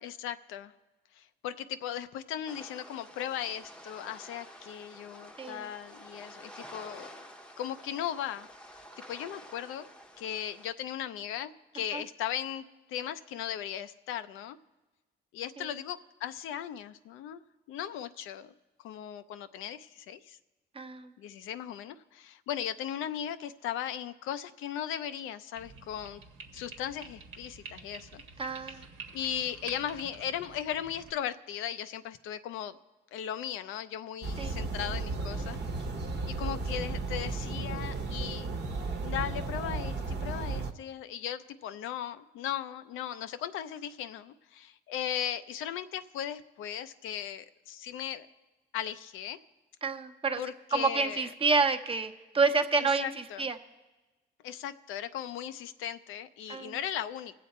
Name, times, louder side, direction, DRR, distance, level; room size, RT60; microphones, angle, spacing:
voice 1, 0.0-0.7 1.2-7.3 7.6-8.5 9.1-9.9 10.2-14.6 15.3-17.4 17.7-18.5 18.8-20.4 21.2-26.2 26.5-28.2 29.1-32.8 33.1-35.6 36.4-38.5 39.0-48.3 48.7-49.4 50.4-51.3 52.8-53.4 54.4-57.4, left 10 dB, 90° left, 10 dB, 0.5 m, -37 dB
sound 1, 2.5-10.7, equal, 5° left, 0.8 m, -50 dB
voice 2, 20.7-21.1 28.4-28.8 34.4-34.6 49.8-50.4 50.7-53.6 56.5-56.8, right 4 dB, 30° right, 6 dB, 0.9 m, -29 dB
sound 2, 25.6-31.1, right 4 dB, 80° right, 1.2 m, -49 dB
sound 3, 34.2-40.7, right 3 dB, 60° right, 1.0 m, -34 dB
21.0 x 7.6 x 4.3 m, 1.1 s
cardioid pair, 90°, 20 cm